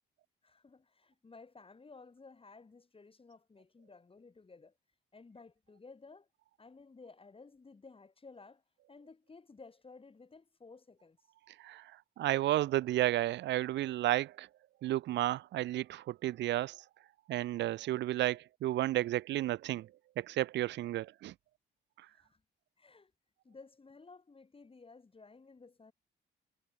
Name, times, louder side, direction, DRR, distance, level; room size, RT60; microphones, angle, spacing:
voice 1, 0.4-4.7 5.1-6.3 6.6-8.6 8.9-11.2 22.1-22.4 22.8-23.1 23.4-25.9, left 4 dB, 30° left, 5.2 m, -55 dB
voice 2, 12.2-14.5 14.8-16.8 17.3-19.9 20.2-21.3, right 14 dB, 80° right, 0.8 m, -32 dB
cardioid pair, 70°, 18 cm